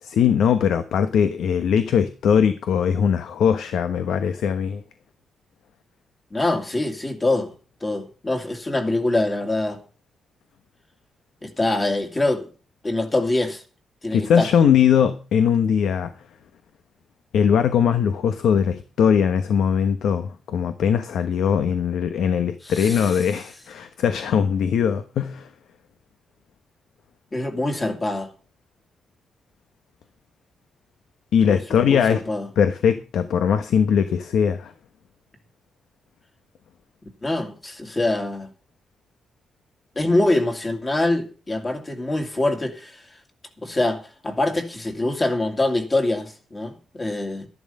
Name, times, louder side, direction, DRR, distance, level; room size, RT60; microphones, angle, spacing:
voice 1, 0.0-4.8 14.1-16.1 17.3-25.5 31.3-32.2 32.6-34.7, left 7 dB, 80° left, 1.1 m, -20 dB
voice 2, 6.3-7.5 7.8-9.8 11.4-12.5 12.8-13.6 14.0-14.5 22.6-23.2 27.3-28.3 31.5-32.5 37.2-38.5 40.0-43.0 43.6-47.5, left 2 dB, 20° left, 2.2 m, -24 dB
13.0 x 11.0 x 5.4 m
wide cardioid pair, 160°, 0 cm